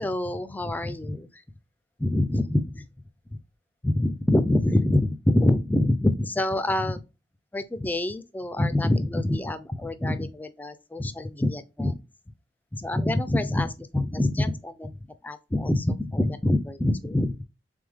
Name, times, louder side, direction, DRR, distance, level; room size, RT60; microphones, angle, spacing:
voice 1, 0.0-1.3 2.0-2.9 3.8-7.0 7.5-12.0 12.7-15.0 15.2-17.4, left 1 dB, 10° left, 0.3 m, -25 dB
3.5 x 3.4 x 3.5 m
head